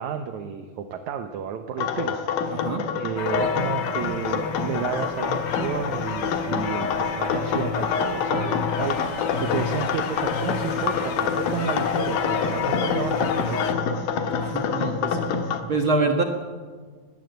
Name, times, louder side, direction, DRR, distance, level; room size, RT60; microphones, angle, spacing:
voice 1, 0.0-2.6 2.9-13.8, right 7 dB, 70° right, 7 dB, 2.1 m, -32 dB
sound 1, 1.8-15.6, left 6 dB, 80° left, 3.1 m, -27 dB
voice 2, 2.5-2.9 14.4-15.2 15.7-16.2, right 3 dB, 50° right, 3 dB, 1.7 m, -25 dB
sound 2, 3.2-13.7, left 7 dB, 65° left, 1.1 m, -32 dB
20.0 x 19.0 x 8.0 m, 1.5 s
omnidirectional pair, 3.9 m